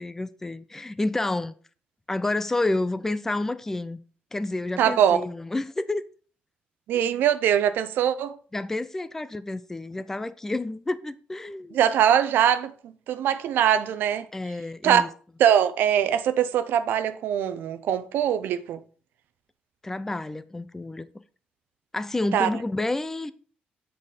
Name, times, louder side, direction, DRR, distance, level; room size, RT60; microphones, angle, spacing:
voice 1, 0.0-1.5 2.1-4.0 4.3-6.0 6.9-7.0 8.5-11.8 14.3-15.1 19.8-21.1 21.9-23.3, left 2 dB, 10° left, 0.4 m, -29 dB
voice 2, 4.8-5.2 6.9-8.4 11.7-14.3 14.8-15.0 15.4-18.8 22.3-22.5, right 9 dB, 90° right, 0.5 m, -22 dB
7.5 x 4.2 x 4.9 m
cardioid pair, 140°, 3 cm